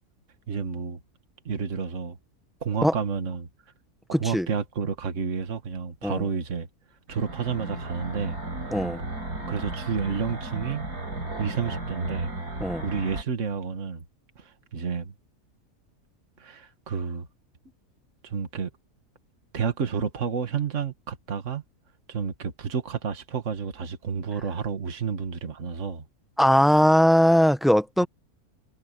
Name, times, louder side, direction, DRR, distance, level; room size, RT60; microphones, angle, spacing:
voice 1, 0.5-1.0 1.5-2.2 2.6-3.5 4.1-6.7 7.1-8.4 9.5-10.8 11.4-12.3 12.8-14.0 14.4-15.1 16.4-17.3 18.2-18.7 19.5-21.6 22.1-26.0, right 6 dB, 50° right, 2.0 m, -30 dB
voice 2, 4.1-4.5 6.0-6.2 8.7-9.0 12.6-12.8 26.4-28.1, equal, ahead, 0.5 m, -20 dB
sound 1, 7.1-13.2, right 2 dB, 85° right, 5.1 m, -34 dB
omnidirectional pair, 1.6 m